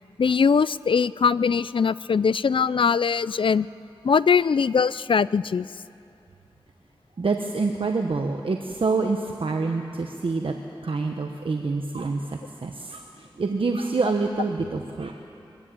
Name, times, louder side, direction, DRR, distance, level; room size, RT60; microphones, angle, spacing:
voice 1, 0.2-3.7 4.0-5.7, left 6 dB, 60° left, 19 dB, 0.4 m, -21 dB
voice 2, 7.2-10.5 10.8-15.1, right 3 dB, 65° right, 4 dB, 1.0 m, -27 dB
23.5 x 14.5 x 8.7 m, 2.7 s
wide cardioid pair, 70°, 10 cm